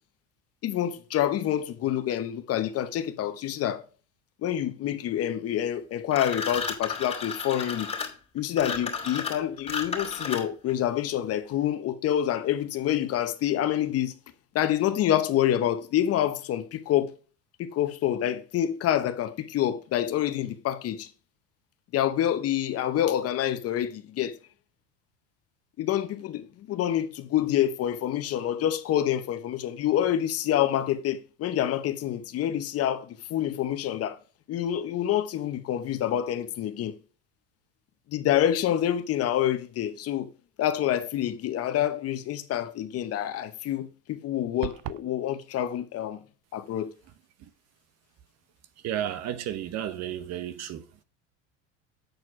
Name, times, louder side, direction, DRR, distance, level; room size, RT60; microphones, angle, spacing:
voice 1, 0.6-3.8 4.4-7.9 8.3-14.1 14.5-17.1 17.6-21.1 21.9-24.4 25.8-34.2 34.5-37.0 38.1-40.3 40.6-46.2 46.5-46.9, left 11 dB, 45° left, 0.9 m, -27 dB
sound 1, 6.1-10.7, left 5 dB, 20° left, 2.6 m, -33 dB
sound 2, 44.6-45.1, right 17 dB, 70° right, 0.6 m, -35 dB
voice 2, 48.8-51.0, right 11 dB, 50° right, 0.9 m, -33 dB
7.9 x 4.4 x 4.7 m
supercardioid pair, 110°, 34 cm